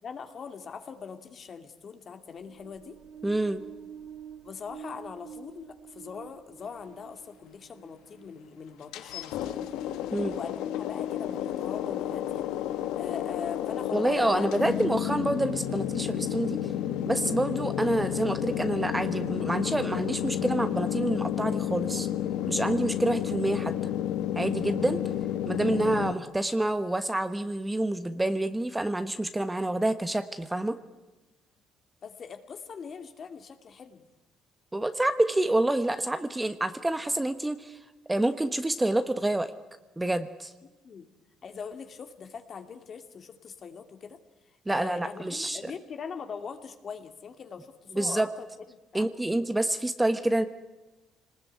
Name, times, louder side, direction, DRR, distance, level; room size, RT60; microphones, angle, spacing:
voice 1, 0.0-3.0 4.4-9.7 10.3-12.4 12.9-14.7 32.0-34.0 40.6-41.1 41.4-44.2 44.7-49.4, left 6 dB, 45° left, 8 dB, 2.4 m, -42 dB
sound 1, 2.2-9.9, right 8 dB, 65° right, 2.3 m, -49 dB
voice 2, 3.2-3.6 10.1-10.4 13.9-16.7 17.0-22.1 22.5-23.7 24.4-25.0 25.5-30.8 34.7-37.8 38.1-39.5 40.0-40.5 44.7-45.7 47.9-48.3 48.9-50.5, right 1 dB, 10° right, 10 dB, 1.2 m, -27 dB
sound 2, 8.9-26.1, left 11 dB, 85° left, 1.3 m, -31 dB
25.5 x 20.0 x 9.5 m, 1.1 s
cardioid pair, 100°, 0 cm